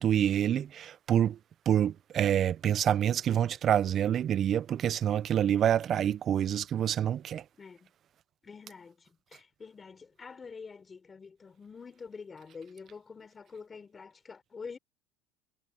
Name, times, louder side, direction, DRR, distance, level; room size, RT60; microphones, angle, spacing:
voice 1, 0.0-1.4 1.7-7.4, right 10 dB, 40° right, 0.4 m, -27 dB
voice 2, 7.6-7.9 8.4-14.8, left 5 dB, 25° left, 4.0 m, -47 dB
supercardioid pair, 120°, 0 cm